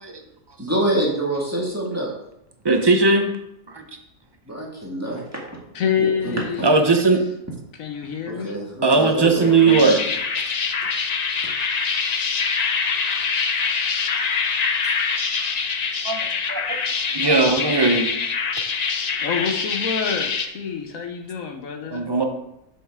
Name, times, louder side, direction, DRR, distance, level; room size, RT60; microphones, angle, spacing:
voice 1, 0.6-2.1 4.5-5.4 6.0-6.4 8.3-9.9, right 1 dB, 10° right, -4 dB, 1.7 m, -26 dB
voice 2, 2.6-3.3 3.7-3.8 6.6-7.2 8.8-10.0 13.7-13.9 16.0-16.8 17.1-18.1 21.9-22.2, right 3 dB, 30° right, 4 dB, 0.5 m, -18 dB
voice 3, 5.7-6.9 7.8-8.7 18.8-18.9 19.2-22.1, left 6 dB, 65° left, 4 dB, 1.2 m, -27 dB
sound 1, 9.4-20.5, left 5 dB, 85° left, 0.3 m, -24 dB
7.6 x 6.3 x 3.6 m, 0.82 s
omnidirectional pair, 1.6 m